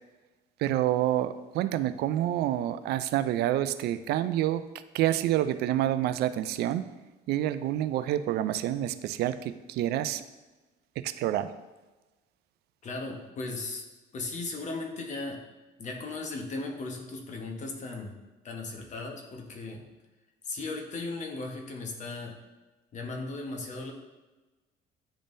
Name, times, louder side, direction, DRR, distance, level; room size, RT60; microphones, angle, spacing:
voice 1, 0.6-4.6 4.9-6.9 7.3-10.2 11.0-11.5, right 13 dB, 75° right, 12 dB, 0.4 m, -28 dB
voice 2, 12.8-13.9 14.1-15.4 15.8-18.2 18.4-19.8 20.4-22.4 22.9-23.9, left 3 dB, 45° left, 2 dB, 1.1 m, -37 dB
9.9 x 3.6 x 2.6 m, 1.2 s
cardioid pair, 110°, 17 cm